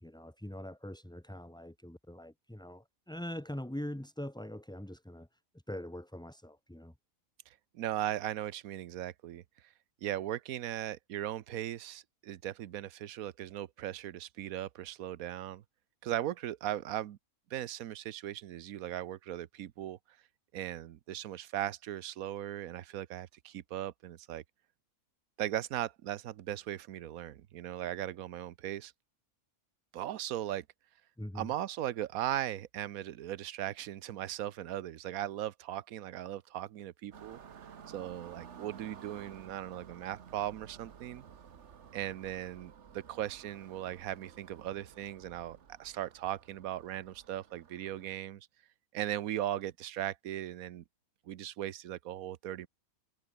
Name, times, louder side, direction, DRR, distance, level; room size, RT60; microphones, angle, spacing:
voice 1, 0.0-5.4 5.7-6.9 31.2-31.5, left 1 dB, 5° left, 0.8 m, -43 dB
voice 2, 7.5-9.4 10.0-15.6 16.0-17.2 17.5-20.0 20.5-24.4 25.4-28.9 29.9-30.6 31.3-37.4 37.9-41.2 41.9-48.5 48.9-50.8 51.3-52.7, right 12 dB, 80° right, 1.2 m, -38 dB
sound 1, 37.1-48.2, right 7 dB, 55° right, 1.4 m, -53 dB
omnidirectional pair, 1.5 m